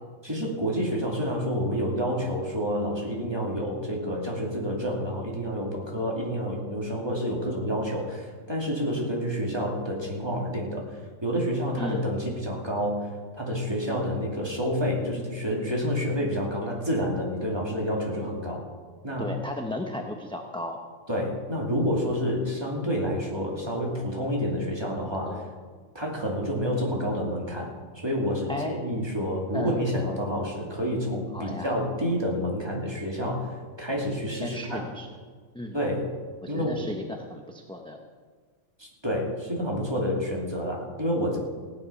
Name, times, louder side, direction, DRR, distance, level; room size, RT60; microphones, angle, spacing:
voice 1, 0.2-18.6 19.0-19.3 21.1-25.4 25.9-34.8 35.7-36.1 36.5-36.9 38.8-41.4, equal, 20° right, -2 dB, 2.7 m, -29 dB
voice 2, 11.8-12.2 16.6-16.7 19.2-20.8 25.0-25.5 28.5-28.7 29.5-29.8 31.3-31.8 34.4-35.1 35.5-35.8 36.4-38.0, left 1 dB, 5° left, 2 dB, 0.7 m, -35 dB
16.5 x 9.7 x 5.7 m, 1.5 s
omnidirectional pair, 1.3 m